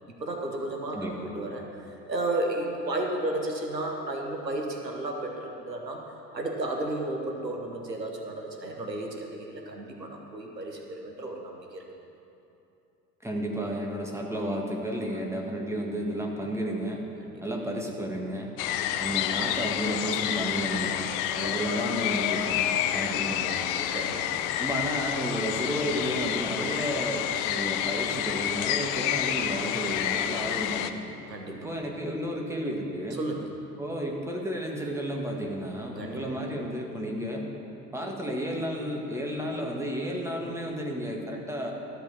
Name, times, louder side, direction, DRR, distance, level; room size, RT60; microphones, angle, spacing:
voice 1, 0.2-1.7 2.1-6.0 6.3-11.8 17.2-17.4 18.6-19.0 20.6-20.9 21.4-21.6 22.9-23.4 23.9-24.5 31.3-31.7 33.1-33.5 35.9-36.4, right 2 dB, 90° right, 1 dB, 1.2 m, -33 dB
voice 2, 0.9-1.3 13.2-17.0 17.4-18.5 19.0-21.1 21.3-23.9 24.6-31.1 31.5-33.3 33.8-37.5 37.9-41.7, equal, 5° right, -1 dB, 1.7 m, -32 dB
sound 1, 18.6-30.9, left 11 dB, 40° left, 0.6 m, -29 dB
13.0 x 5.6 x 7.3 m, 2.8 s
figure-of-eight pair, 70°, 48 cm